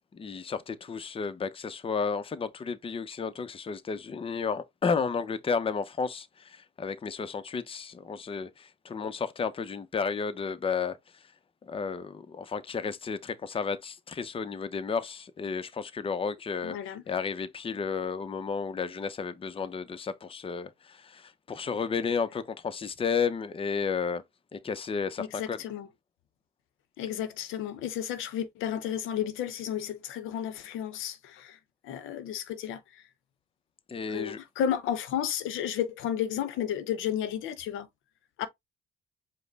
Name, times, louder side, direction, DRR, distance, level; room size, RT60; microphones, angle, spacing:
voice 1, 0.1-11.0 11.6-24.2 24.5-25.6 33.9-34.4, left 5 dB, 30° left, 0.6 m, -32 dB
voice 2, 16.6-17.0 25.2-25.9 27.0-31.6 31.8-33.0 34.1-37.9 38.4-38.5, left 9 dB, 90° left, 0.7 m, -32 dB
5.0 x 2.1 x 3.9 m
cardioid pair, 90°, 20 cm